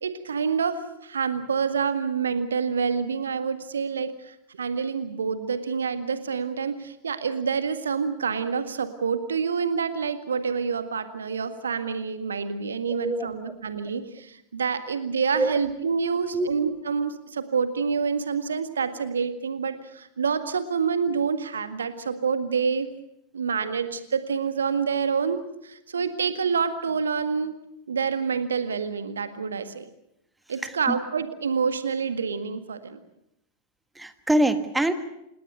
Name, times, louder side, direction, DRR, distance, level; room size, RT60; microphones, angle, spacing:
voice 1, 0.0-22.9 23.3-27.5 27.9-29.8 30.5-33.0, right 6 dB, 70° right, 10 dB, 1.8 m, -27 dB
voice 2, 12.9-13.5 15.3-15.6 16.3-16.5 30.6-31.0 33.9-34.9, right 1 dB, 5° right, 10 dB, 1.5 m, -25 dB
27.5 x 20.0 x 6.8 m, 0.82 s
figure-of-eight pair, 90°, 0 cm